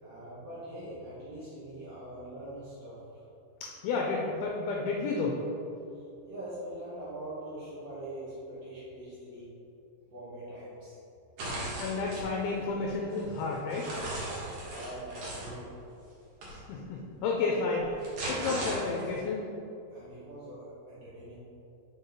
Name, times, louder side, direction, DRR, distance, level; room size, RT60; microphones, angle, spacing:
voice 1, 0.0-3.2 6.2-9.5 10.1-11.0 14.7-15.6 19.9-21.4, right 1 dB, 85° right, -9 dB, 1.3 m, -43 dB
voice 2, 3.6-5.4 11.5-13.9 16.5-18.0 18.3-19.5, left 3 dB, 80° left, -1 dB, 2.4 m, -31 dB
sound 1, 11.4-12.3 12.8-15.5 16.4-16.6 17.8-19.2, right 1 dB, 60° right, 2.1 m, -37 dB
5.7 x 5.6 x 3.8 m, 2.8 s
omnidirectional pair, 4.7 m